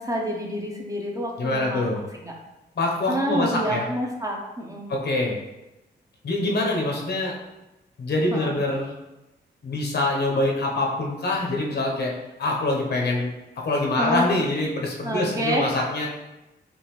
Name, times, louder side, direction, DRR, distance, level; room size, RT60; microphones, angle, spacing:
voice 1, 0.0-1.9 2.2-2.3 3.1-4.9 8.3-8.5 14.0-14.2 15.0-15.7, equal, 20° right, -1 dB, 0.7 m, -27 dB
voice 2, 1.4-2.0 2.8-3.9 4.9-5.4 6.2-7.3 8.0-8.9 9.6-12.1 12.4-13.3 13.6-16.1, left 2 dB, 65° left, -1 dB, 0.9 m, -25 dB
5.3 x 2.5 x 3.1 m, 0.99 s
wide cardioid pair, 115°, 18 cm